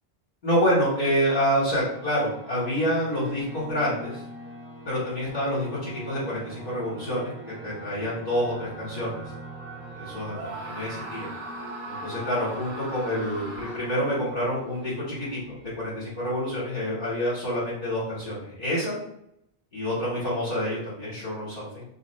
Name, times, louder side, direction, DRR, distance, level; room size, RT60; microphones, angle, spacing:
voice 1, 0.4-4.2 4.8-9.2 9.9-11.3 11.9-19.0 19.7-21.8, equal, 50° left, -9 dB, 1.3 m, -27 dB
sound 1, 1.8-17.1, right 1 dB, 5° left, 0.9 m, -43 dB
Screaming, 10.3-14.1, right 1 dB, 60° right, 1.3 m, -39 dB
2.9 x 2.5 x 4.2 m, 0.77 s
omnidirectional pair, 1.0 m